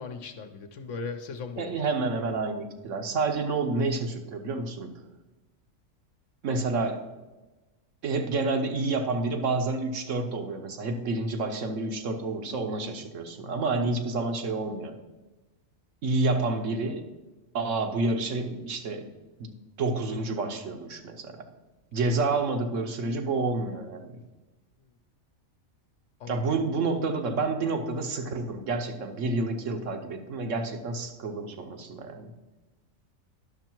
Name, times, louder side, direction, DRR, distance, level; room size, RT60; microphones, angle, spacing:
voice 1, 0.0-1.9 26.2-26.6, left 4 dB, 65° left, 7 dB, 1.1 m, -38 dB
voice 2, 1.6-4.9 6.4-7.1 8.0-14.9 16.0-17.0 17.5-19.1 19.4-21.5 21.9-24.2 26.3-32.3, right 3 dB, 65° right, 6 dB, 1.2 m, -29 dB
10.5 x 6.5 x 4.5 m, 1.1 s
omnidirectional pair, 1.4 m